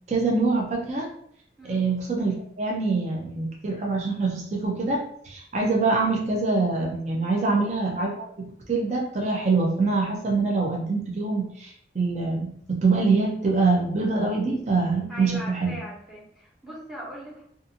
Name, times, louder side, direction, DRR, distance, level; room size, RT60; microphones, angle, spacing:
voice 1, 0.1-1.1 1.6-15.8, right 3 dB, 40° right, -1 dB, 0.4 m, -25 dB
voice 2, 7.3-7.6 15.1-17.4, right 1 dB, 5° right, -6 dB, 0.8 m, -40 dB
2.6 x 2.5 x 2.5 m, 0.66 s
head